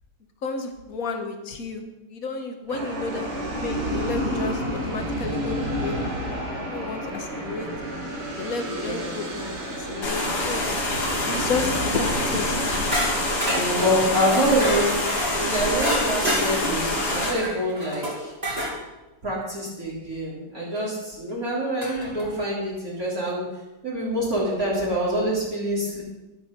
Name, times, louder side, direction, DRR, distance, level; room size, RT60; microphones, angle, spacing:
voice 1, 0.4-7.7 8.4-10.8 11.3-12.6, left 4 dB, 45° left, 5 dB, 1.8 m, -32 dB
sound 1, 2.7-13.4, equal, 85° right, 3.9 m, -31 dB
voice 2, 8.7-9.1 13.5-14.9 15.4-18.3 19.2-23.4 23.8-26.0, equal, 40° right, -6 dB, 4.1 m, -26 dB
sound 2, 10.0-17.3, left 2 dB, 80° left, 3.5 m, -26 dB
sound 3, 12.9-18.8 20.7-20.8 21.8-22.3, equal, 15° right, 3.5 m, -29 dB
13.0 x 11.5 x 5.5 m, 1.1 s
omnidirectional pair, 2.4 m